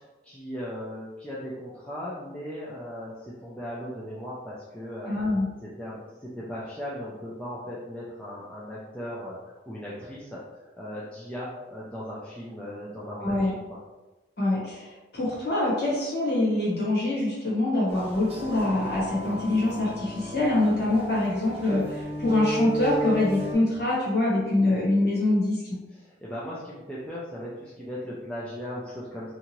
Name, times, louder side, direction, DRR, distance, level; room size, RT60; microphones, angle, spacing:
voice 1, 0.0-5.1 5.6-13.8 25.9-29.3, equal, 5° left, -8 dB, 0.3 m, -38 dB
voice 2, 5.1-5.5 13.2-13.5 14.4-14.9 15.1-25.6, left 2 dB, 60° left, -6 dB, 1.2 m, -24 dB
sound 1, 17.9-23.5, right 2 dB, 35° right, 0.6 m, -34 dB
2.7 x 2.5 x 2.9 m, 1.1 s
head